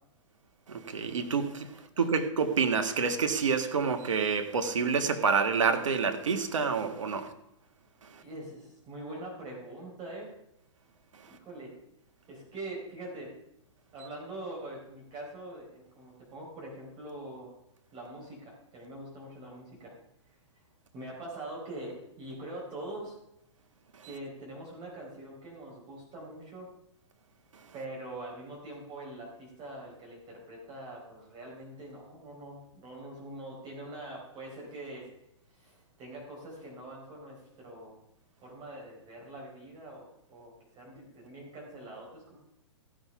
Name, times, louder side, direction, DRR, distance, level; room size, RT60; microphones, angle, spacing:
voice 1, 0.7-7.3 8.1-8.2, right 5 dB, 80° right, 1.6 m, -28 dB
voice 2, 8.2-10.3 11.3-11.7 12.3-13.3 13.9-17.5 17.9-19.9 20.5-20.6 20.9-23.2 24.0-26.7 27.7-35.1 35.5-37.9 38.4-42.4, right 1 dB, 30° right, 4.4 m, -43 dB
15.5 x 6.4 x 5.7 m
hypercardioid pair, 125°, 16 cm